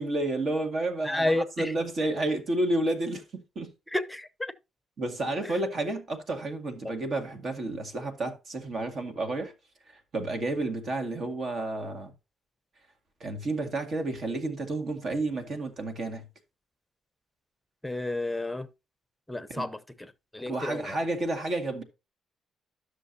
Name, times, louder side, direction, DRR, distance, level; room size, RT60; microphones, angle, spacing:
voice 1, 0.0-3.7 5.0-9.5 9.9-12.1 13.2-16.3 19.5-19.7 20.5-21.8, right 2 dB, 55° right, 1.9 m, -31 dB
voice 2, 1.0-1.7 3.9-4.5 5.4-5.5 6.8-6.9 17.8-18.7 19.3-21.0, left 1 dB, 5° left, 0.8 m, -31 dB
12.5 x 6.6 x 2.8 m
cardioid pair, 90°, 0 cm